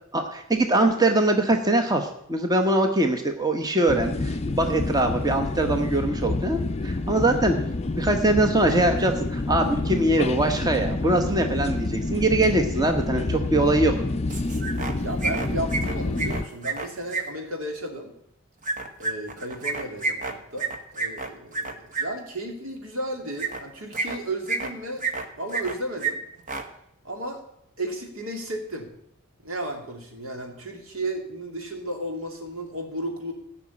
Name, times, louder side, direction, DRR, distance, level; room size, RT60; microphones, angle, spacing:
voice 1, 0.1-7.5 7.9-13.9, right 2 dB, 20° right, 5 dB, 1.0 m, -22 dB
sound 1, 3.9-16.5, left 2 dB, 30° left, 0.5 m, -28 dB
sound 2, 14.3-14.9 15.2-17.2 18.6-22.0 23.4-23.6 23.9-24.7 25.0-25.7 26.0-26.1 26.4-26.6, right 4 dB, 40° right, 1.3 m, -29 dB
voice 2, 15.0-18.1 19.0-25.0 25.4-26.2 27.0-27.4 27.8-28.9 29.4-33.3, right 1 dB, 75° right, 2 dB, 2.8 m, -34 dB
16.0 x 6.0 x 8.6 m, 0.75 s
head